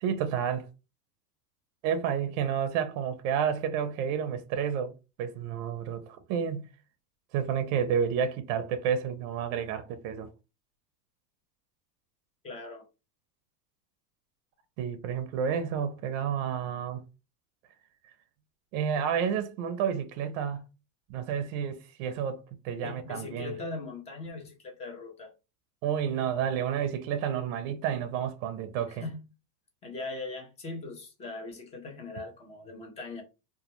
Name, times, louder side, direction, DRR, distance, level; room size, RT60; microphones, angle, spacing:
voice 1, 0.0-0.7 1.8-4.9 5.2-6.7 7.3-10.3 14.8-17.0 18.7-20.6 21.1-23.6 25.8-29.0, right 8 dB, 55° right, 0.5 m, -30 dB
voice 2, 12.4-12.8 22.8-25.3 28.9-29.2 29.8-33.2, left 3 dB, 15° left, 0.4 m, -40 dB
2.2 x 2.1 x 2.9 m
supercardioid pair, 120°, 49 cm